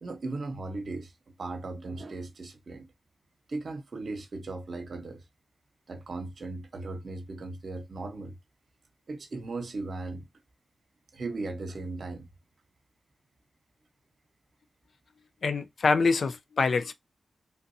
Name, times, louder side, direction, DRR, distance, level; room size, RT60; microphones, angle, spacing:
voice 1, 0.0-1.1 1.4-2.9 3.5-5.2 5.9-8.3 9.1-10.3 11.1-12.3, right 3 dB, 65° right, 0.9 m, -37 dB
voice 2, 15.4-16.9, left 4 dB, 70° left, 0.4 m, -25 dB
3.4 x 2.6 x 2.6 m
cardioid pair, 60°, 0 cm